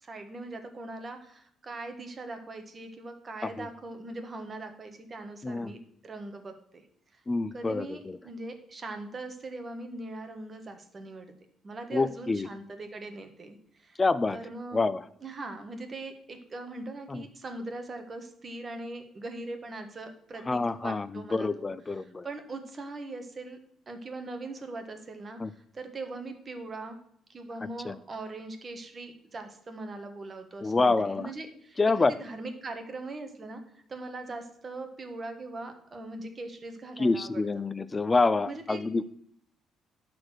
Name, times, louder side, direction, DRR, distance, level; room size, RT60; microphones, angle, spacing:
voice 1, 0.0-6.8 7.1-7.2 7.5-11.3 11.6-14.0 14.3-14.8 15.2-23.6 23.9-27.0 27.3-37.6 38.4-38.8, right 2 dB, 30° right, 6 dB, 1.5 m, -41 dB
voice 2, 7.3-8.2 11.9-12.5 14.0-14.4 14.7-15.0 17.1-17.2 20.5-22.3 25.4-25.5 27.9-28.0 30.6-31.3 31.8-32.1 37.0-39.0, left 3 dB, 20° left, 16 dB, 0.5 m, -27 dB
11.0 x 4.3 x 6.2 m, 0.67 s
cardioid pair, 120°, 0 cm